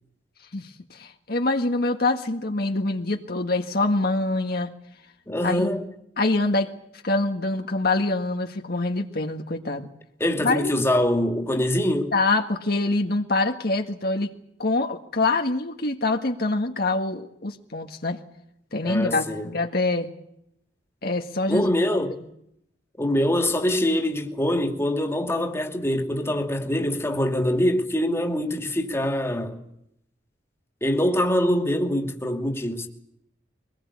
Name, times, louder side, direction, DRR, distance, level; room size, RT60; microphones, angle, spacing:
voice 1, 0.5-4.7 5.4-5.7 6.2-6.7 7.0-9.9 10.4-10.7 12.1-14.3 14.6-18.2 18.7-20.1 21.0-21.7, left 2 dB, 55° left, 1.7 m, -25 dB
voice 2, 5.3-5.9 10.2-12.1 18.8-19.5 21.5-22.2 23.0-29.6 30.8-32.9, left 1 dB, 15° left, 2.6 m, -24 dB
24.0 x 20.0 x 8.5 m
head